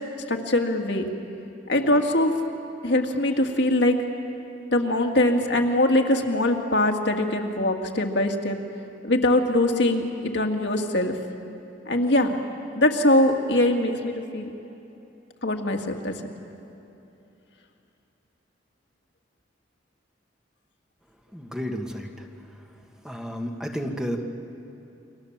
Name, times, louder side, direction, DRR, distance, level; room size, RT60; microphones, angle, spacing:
voice 1, 0.3-1.1 1.7-2.3 2.8-4.0 4.7-8.6 9.0-11.2 11.9-12.4 12.7-14.5 15.4-16.2, left 1 dB, 65° left, 3 dB, 2.1 m, -22 dB
voice 2, 21.3-22.3 23.0-24.2, equal, 5° right, 2 dB, 1.7 m, -31 dB
29.5 x 24.5 x 7.4 m, 2.9 s
head